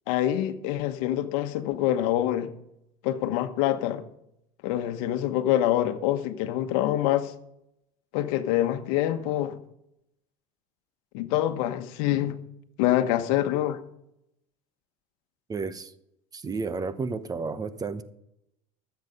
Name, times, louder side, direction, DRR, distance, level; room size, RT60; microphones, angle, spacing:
voice 1, 0.1-2.5 3.0-4.0 4.6-7.3 8.1-9.6 11.1-12.4 12.8-13.8, left 12 dB, 75° left, 1.1 m, -25 dB
voice 2, 15.5-15.9 16.3-18.0, right 4 dB, 20° right, 0.8 m, -32 dB
13.0 x 8.1 x 5.3 m
supercardioid pair, 110°, 18 cm